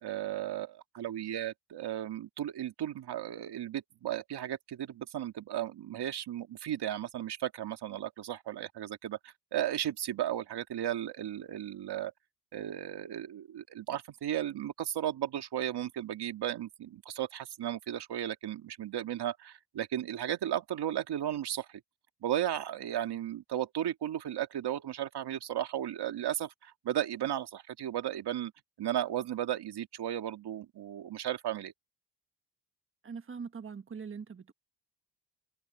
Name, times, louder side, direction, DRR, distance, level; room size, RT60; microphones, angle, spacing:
voice 1, 0.0-12.1 12.5-21.8 22.2-28.5 28.8-31.7, right 11 dB, 65° right, 2.1 m, -35 dB
voice 2, 33.0-34.5, right 5 dB, 30° right, 1.3 m, -42 dB
open air
cardioid pair, 90°, 43 cm